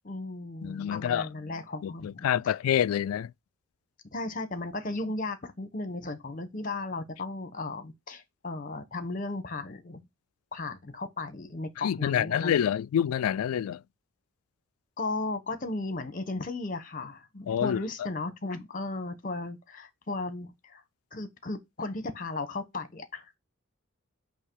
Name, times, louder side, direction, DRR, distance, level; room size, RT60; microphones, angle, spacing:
voice 1, 0.0-2.5 4.1-10.0 10.5-12.6 15.0-20.8 21.1-23.4, left 2 dB, 40° left, 1.2 m, -35 dB
voice 2, 0.6-1.3 1.8-3.3 11.8-13.8 17.5-17.8, left 9 dB, 85° left, 0.3 m, -27 dB
8.5 x 2.9 x 4.7 m
head